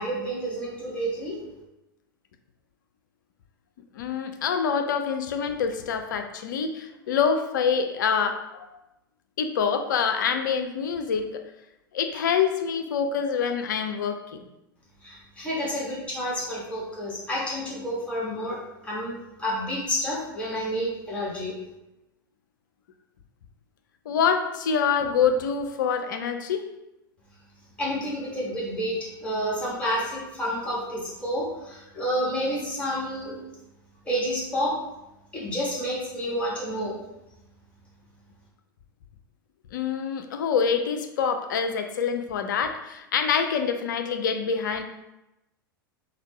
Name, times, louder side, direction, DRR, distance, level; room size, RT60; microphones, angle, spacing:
voice 1, 0.0-1.4 15.0-21.5 27.8-33.4 34.0-34.8 35.3-37.0, equal, 10° left, -5 dB, 1.5 m, -29 dB
voice 2, 3.9-8.7 9.4-11.4 11.9-14.2 24.1-26.7 39.7-44.8, left 6 dB, 60° left, 7 dB, 0.4 m, -26 dB
4.1 x 2.7 x 3.0 m, 0.93 s
figure-of-eight pair, 90°, 12 cm